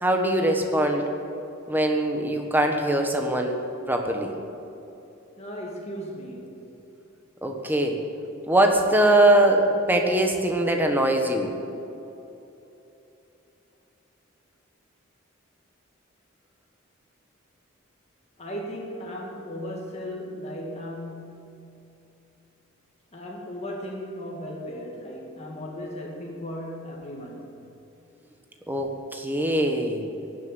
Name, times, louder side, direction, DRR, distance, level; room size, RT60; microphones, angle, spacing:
voice 1, 0.0-1.1 1.7-3.6 3.9-4.3 7.4-8.0 8.5-11.6 28.7-30.0, right 1 dB, 10° right, 3 dB, 1.5 m, -22 dB
voice 2, 5.4-6.7 18.4-21.9 23.1-27.6, equal, 30° left, -2 dB, 2.0 m, -36 dB
16.0 x 7.9 x 9.7 m, 3.0 s
head